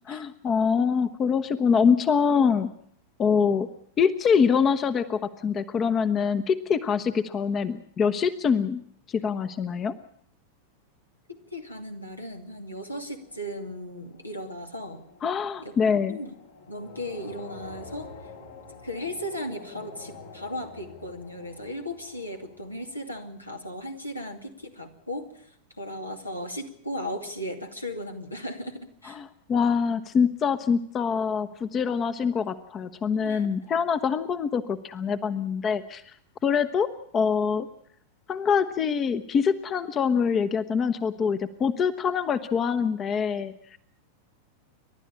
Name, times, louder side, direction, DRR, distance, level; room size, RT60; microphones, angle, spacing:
voice 1, 0.1-2.7 3.2-3.7 4.0-8.8 9.1-9.9 15.2-16.2 29.1-36.1 36.4-37.7 38.3-43.5, left 6 dB, 25° left, 13 dB, 1.0 m, -24 dB
voice 2, 11.3-15.0 15.6-15.7 16.1-16.3 16.7-18.1 18.8-29.2 33.1-33.5, left 1 dB, 85° left, 4 dB, 2.5 m, -36 dB
sound 1, 12.7-23.5, left 4 dB, 70° left, 3.8 m, -48 dB
29.5 x 12.0 x 8.5 m, 0.65 s
figure-of-eight pair, 90°, 0 cm